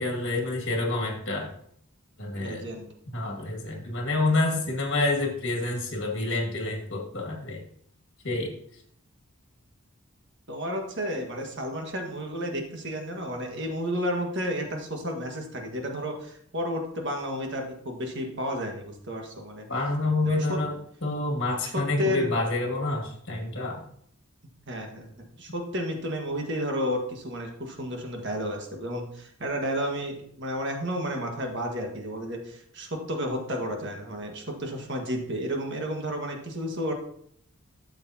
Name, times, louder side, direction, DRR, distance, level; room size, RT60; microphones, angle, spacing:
voice 1, 0.0-1.5 2.2-2.7 3.1-7.6 8.2-8.5 19.7-23.8, left 2 dB, 55° left, 0 dB, 2.1 m, -28 dB
voice 2, 2.3-2.9 10.5-19.7 20.2-20.6 21.6-22.3 24.7-36.9, equal, 55° right, 2 dB, 1.6 m, -32 dB
12.5 x 7.0 x 2.8 m, 0.67 s
head